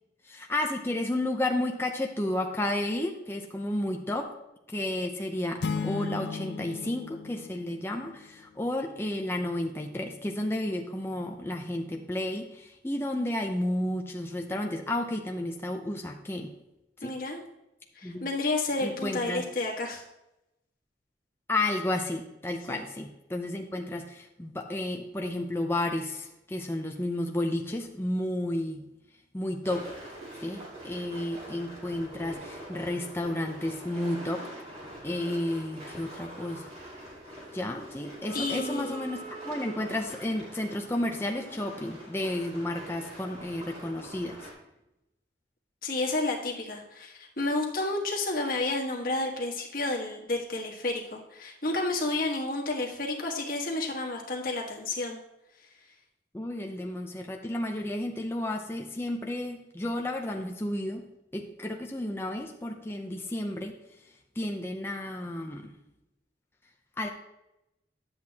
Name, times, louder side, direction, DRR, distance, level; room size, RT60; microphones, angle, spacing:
voice 1, 0.3-4.3 4.7-16.5 17.0-17.1 18.0-18.2 18.8-19.4 21.5-28.8 29.3-29.9 30.4-34.5 35.0-36.7 37.5-44.4 56.3-61.0 61.3-63.8 64.4-65.7 67.0-67.1, left 1 dB, 15° left, 2 dB, 0.6 m, -32 dB
sound 1, 5.6-8.4, left 5 dB, 65° left, 0.4 m, -35 dB
voice 2, 17.0-17.4 17.9-20.0 22.7-22.8 38.3-39.0 45.8-55.2, left 2 dB, 50° left, -1 dB, 1.4 m, -31 dB
sound 2, 29.6-44.5, right 1 dB, 35° right, 2.5 m, -44 dB
10.5 x 8.0 x 2.8 m, 0.91 s
head